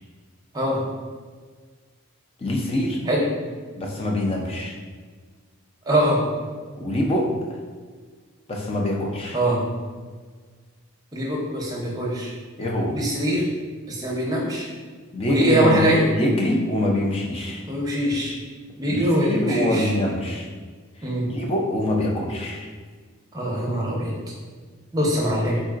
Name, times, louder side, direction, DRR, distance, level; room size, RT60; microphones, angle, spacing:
voice 1, 2.4-3.0 3.8-4.7 6.8-7.3 8.5-9.4 12.6-13.0 15.1-15.8 16.1-17.6 18.9-20.5 21.3-22.7, left 1 dB, 25° left, 0 dB, 0.4 m, -24 dB
voice 2, 5.9-6.2 9.3-9.6 11.1-12.3 12.9-13.4 13.9-14.6 15.3-16.0 17.7-18.3 18.8-19.9 21.0-21.3 23.3-24.1 24.9-25.6, equal, 15° right, -4 dB, 0.6 m, -22 dB
3.7 x 3.6 x 2.4 m, 1.5 s
head